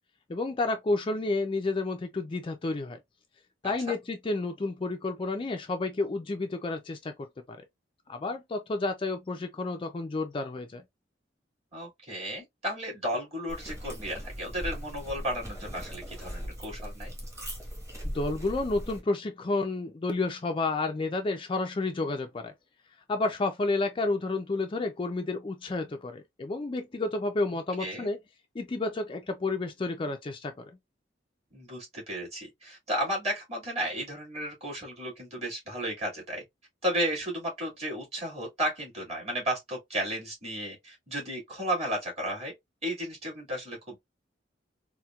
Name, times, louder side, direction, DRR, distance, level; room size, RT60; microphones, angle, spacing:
voice 1, 0.3-3.0 3.6-7.6 8.1-10.8 18.0-22.5 23.1-28.2 28.5-30.7, left 3 dB, 30° left, 0.4 m, -30 dB
voice 2, 11.7-17.1 27.8-28.1 31.5-36.4 36.8-42.5 42.8-44.0, equal, 35° right, 2.2 m, -33 dB
sound 1, 13.5-19.0, equal, 15° right, 1.2 m, -39 dB
4.2 x 2.2 x 2.3 m
head